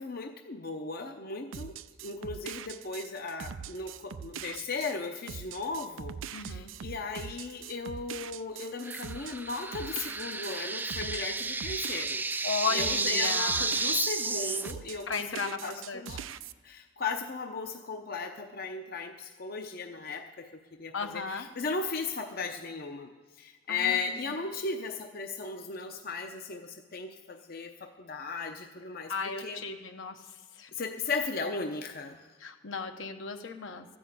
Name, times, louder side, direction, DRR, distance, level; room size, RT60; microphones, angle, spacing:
voice 1, 0.0-1.8 2.0-16.2 16.6-23.1 23.4-29.6 30.7-32.3, left 4 dB, 50° left, 5 dB, 0.7 m, -36 dB
sound 1, 1.5-14.4 14.6-16.5, right 8 dB, 85° right, 0.5 m, -42 dB
voice 2, 6.3-6.7 12.4-13.7 15.1-15.6 15.9-16.2 20.9-21.5 23.7-24.1 29.1-30.2 30.6-30.7 32.4-33.9, left 5 dB, 80° left, 5 dB, 1.1 m, -35 dB
sound 2, 8.9-14.7, right 3 dB, 10° right, 0.3 m, -32 dB
13.5 x 6.2 x 8.7 m, 1.4 s
head